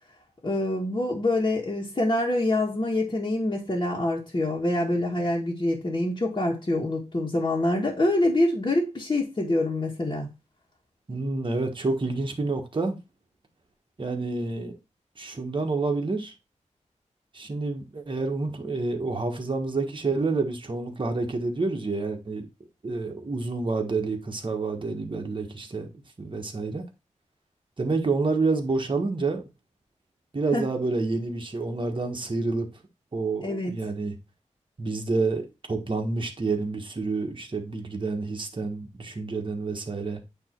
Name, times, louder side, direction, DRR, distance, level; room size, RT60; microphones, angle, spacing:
voice 1, 0.4-10.3 30.5-30.6 33.4-33.7, left 1 dB, 35° left, 1.6 m, -25 dB
voice 2, 11.1-13.0 14.0-14.8 15.2-16.3 17.3-22.4 22.8-25.9 26.2-26.8 27.8-29.5 30.3-32.7 33.1-34.1 34.8-40.2, right 3 dB, 40° right, 1.5 m, -28 dB
9.0 x 3.1 x 4.5 m
wide cardioid pair, 105°, 13 cm